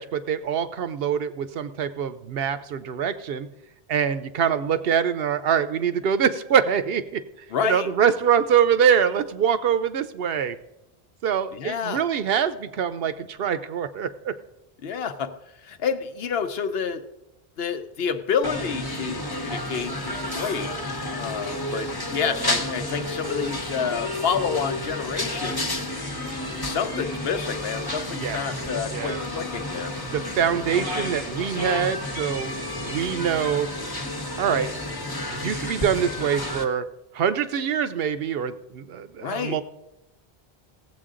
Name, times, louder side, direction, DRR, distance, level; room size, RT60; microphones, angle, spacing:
voice 1, 0.0-3.5 3.9-7.2 7.6-10.6 11.2-14.4 28.2-28.4 28.9-29.2 30.1-33.7 34.4-34.7 35.3-36.9 37.1-39.6, right 8 dB, 70° right, 12 dB, 0.8 m, -24 dB
voice 2, 7.5-7.9 11.5-12.1 14.8-15.4 15.6-17.0 17.6-20.7 21.2-25.8 26.4-29.9 39.2-39.6, left 7 dB, 70° left, 9 dB, 0.9 m, -29 dB
sound 1, 18.4-36.6, left 1 dB, 25° left, 0.9 m, -31 dB
17.0 x 7.6 x 3.7 m, 0.91 s
omnidirectional pair, 1.1 m